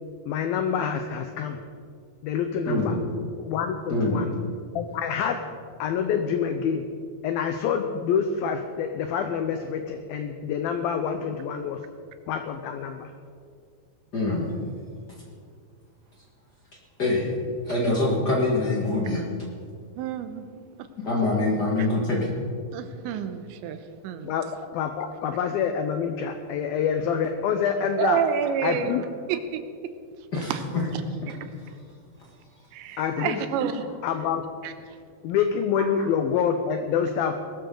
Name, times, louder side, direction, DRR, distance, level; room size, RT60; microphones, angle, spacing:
voice 1, 0.3-1.6 2.2-3.0 3.4-4.3 4.8-5.4 5.8-6.9 7.2-11.8 12.3-13.1 24.2-28.2 28.6-29.0 33.0-33.4 34.0-34.4 35.2-37.4, left 7 dB, 90° left, 6 dB, 2.1 m, -27 dB
voice 2, 2.6-3.0 3.9-4.2 14.1-14.5 17.0-17.4 17.6-19.2 21.0-22.3 30.3-30.5, left 2 dB, 55° left, -4 dB, 1.1 m, -24 dB
voice 3, 19.9-20.5 20.8-20.9 21.8-21.9 22.7-24.3 28.0-29.0 29.3-29.6 30.2-30.6 31.3-31.4 32.7-33.9 34.6-35.0, right 8 dB, 85° right, 9 dB, 3.1 m, -29 dB
19.5 x 13.5 x 3.9 m, 2.2 s
omnidirectional pair, 5.1 m